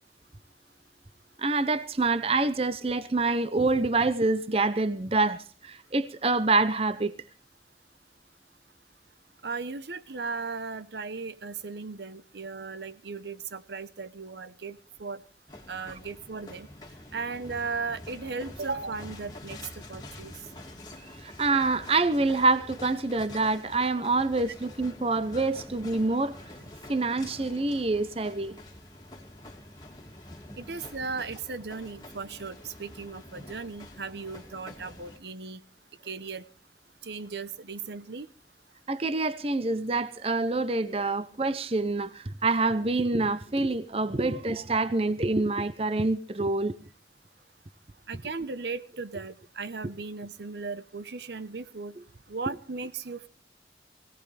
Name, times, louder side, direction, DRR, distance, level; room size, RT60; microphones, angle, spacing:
voice 1, 1.4-7.1 21.2-26.4 26.9-28.6 38.9-46.8, right 3 dB, 35° right, 0.7 m, -26 dB
voice 2, 9.4-15.2 15.7-16.7 17.1-20.3 30.6-35.6 36.0-36.5 37.0-38.3 48.1-52.0 52.3-53.3, right 4 dB, 75° right, 0.9 m, -36 dB
sound 1, 15.5-35.2, left 1 dB, 25° left, 2.3 m, -46 dB
22.0 x 17.0 x 3.3 m
head